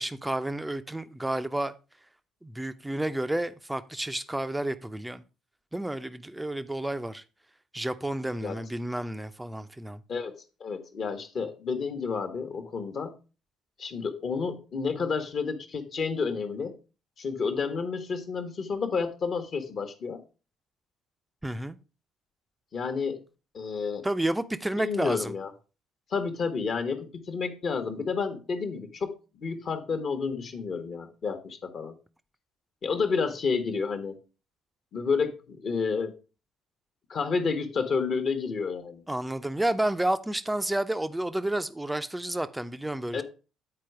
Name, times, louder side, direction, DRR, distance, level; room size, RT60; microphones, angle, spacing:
voice 1, 0.0-1.7 2.4-5.2 5.7-7.2 7.7-10.0 21.4-21.8 24.0-25.3 39.1-43.2, right 1 dB, 10° right, 0.6 m, -30 dB
voice 2, 10.6-13.1 13.8-16.7 17.2-20.2 22.7-23.2 23.5-24.1 24.8-25.5 26.1-31.9 32.8-34.2 34.9-36.2 37.1-39.0 43.1-43.2, left 5 dB, 45° left, 1.2 m, -30 dB
8.9 x 4.6 x 4.6 m
figure-of-eight pair, 50°, 0 cm